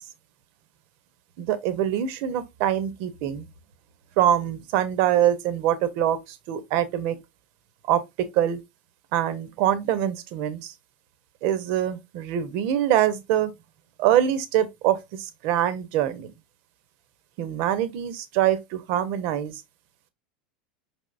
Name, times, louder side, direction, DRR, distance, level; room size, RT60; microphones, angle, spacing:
voice 1, 1.5-3.4 4.2-6.2 6.5-7.1 7.9-8.0 8.4-8.6 9.1-10.6 11.4-13.5 14.0-15.0 15.4-16.3 17.4-19.5, right 11 dB, 55° right, 0.8 m, -24 dB
4.9 x 3.5 x 2.5 m
hypercardioid pair, 90°, 5 cm